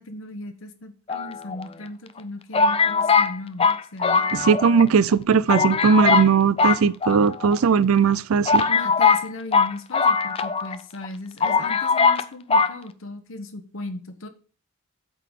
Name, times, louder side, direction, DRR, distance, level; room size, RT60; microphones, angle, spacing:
voice 1, 0.0-4.2 8.7-14.3, left 2 dB, 65° left, 1.1 m, -37 dB
sound 1, 1.1-1.8 2.5-4.8 5.1-5.2 5.5-6.3 6.6-7.6 8.1-8.2 8.5-10.8 11.0-11.1 11.4-12.2 12.5-12.7, left 5 dB, 25° left, 0.4 m, -20 dB
voice 2, 4.3-8.6, right 6 dB, 70° right, 0.4 m, -18 dB
8.3 x 3.9 x 6.5 m
head